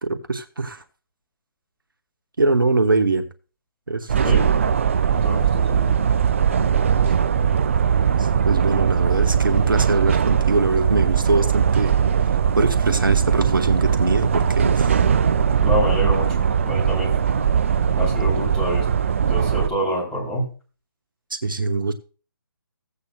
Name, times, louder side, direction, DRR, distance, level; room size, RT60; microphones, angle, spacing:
voice 1, 0.0-0.8 2.4-3.3 3.9-4.6 8.2-11.9 12.2-12.3 12.5-15.0 21.3-21.9, right 3 dB, 65° right, 7 dB, 1.0 m, -22 dB
sound 1, 4.1-19.7, right 7 dB, 35° right, 0.4 m, -20 dB
voice 2, 5.1-5.9 15.6-17.2 18.0-18.9 19.3-20.4, equal, 5° left, -4 dB, 3.3 m, -26 dB
15.5 x 8.2 x 2.2 m, 0.36 s
figure-of-eight pair, 140°, 12 cm